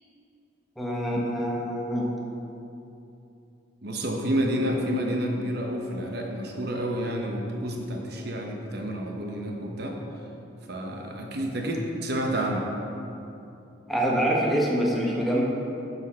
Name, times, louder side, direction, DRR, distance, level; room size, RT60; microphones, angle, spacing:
voice 1, 0.8-2.1 13.9-15.4, equal, ahead, -4 dB, 1.1 m, -25 dB
voice 2, 3.8-10.0 10.7-12.7, equal, 55° right, 1 dB, 0.8 m, -29 dB
9.6 x 6.4 x 4.3 m, 2.8 s
head